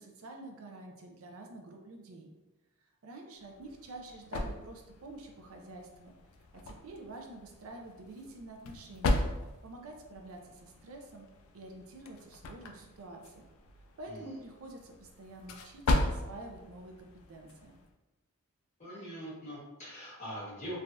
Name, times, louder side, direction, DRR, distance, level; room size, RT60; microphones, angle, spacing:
voice 1, 0.0-2.3 3.0-6.1 6.7-9.2 9.6-11.3 11.5-13.4 14.0-17.8, right 2 dB, 75° right, 2 dB, 0.5 m, -48 dB
sound 1, 3.4-17.9, left 2 dB, 70° left, 0.3 m, -37 dB
voice 2, 14.0-14.4 18.8-20.8, equal, 30° left, -9 dB, 1.4 m, -43 dB
3.3 x 2.3 x 2.6 m, 1.1 s
head